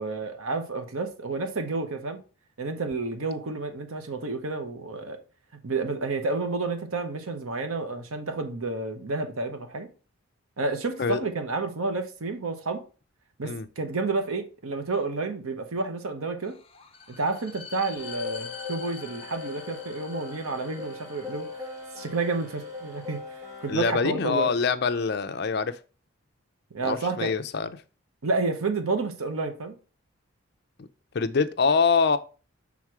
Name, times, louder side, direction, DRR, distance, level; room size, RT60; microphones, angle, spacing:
voice 1, 0.0-2.2 2.6-5.2 5.6-9.9 10.6-12.8 13.4-16.6 17.1-21.5 22.0-24.5 26.7-27.3 28.2-29.7, right 3 dB, 85° right, 0.9 m, -30 dB
sound 1, 16.4-23.2, left 6 dB, 25° left, 0.8 m, -46 dB
sound 2, 18.0-23.8, left 4 dB, 35° right, 1.2 m, -39 dB
voice 2, 23.7-25.8 26.8-27.8 30.8-30.9 31.1-32.2, left 5 dB, 50° left, 0.5 m, -25 dB
6.1 x 3.6 x 4.7 m
head